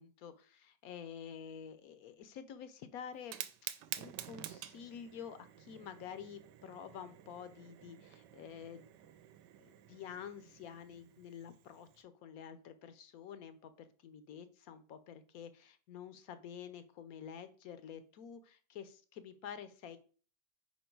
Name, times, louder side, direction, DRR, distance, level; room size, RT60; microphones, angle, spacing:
voice 1, 0.0-8.8 9.6-20.0, left 8 dB, 65° left, 11 dB, 1.0 m, -49 dB
Fire, 3.2-12.0, right 11 dB, 80° right, 1.2 m, -50 dB
5.3 x 4.4 x 4.5 m, 0.40 s
omnidirectional pair, 1.9 m